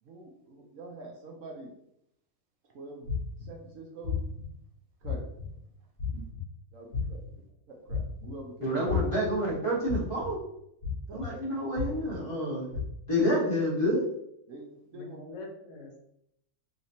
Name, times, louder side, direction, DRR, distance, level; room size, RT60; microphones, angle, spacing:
voice 1, 0.0-1.7 2.7-3.1 3.4-4.2 5.0-5.3 6.7-8.8 11.1-11.2 14.5-15.2, right 2 dB, 70° right, 1 dB, 1.0 m, -45 dB
sound 1, 3.0-3.5 4.0-4.4 5.0-5.5 6.0-6.4 6.9-7.3 7.9-8.3 8.9-9.3 9.9-10.3 10.8-11.3 11.7-12.1 12.7-12.8, left 7 dB, 55° left, 1.4 m, -32 dB
voice 2, 8.6-10.4 11.1-12.7 13.1-14.0, equal, 20° left, -7 dB, 1.3 m, -28 dB
voice 3, 14.9-16.0, left 2 dB, 75° left, 1 dB, 1.2 m, -44 dB
3.2 x 3.1 x 2.7 m, 0.77 s
omnidirectional pair, 1.5 m